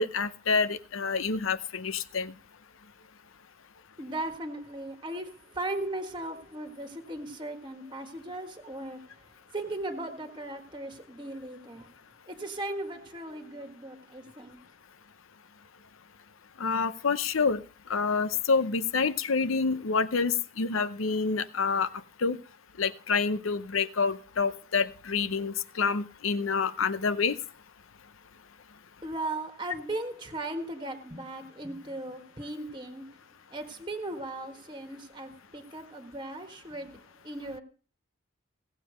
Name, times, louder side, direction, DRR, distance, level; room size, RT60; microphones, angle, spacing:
voice 1, 0.0-2.3 16.6-17.6 17.9-21.9 22.2-22.4 22.8-27.4, left 5 dB, 90° left, 0.7 m, -27 dB
voice 2, 4.0-11.9 12.3-14.6 29.0-33.2 33.5-37.6, right 2 dB, 25° right, 1.5 m, -37 dB
17.5 x 7.4 x 5.1 m
head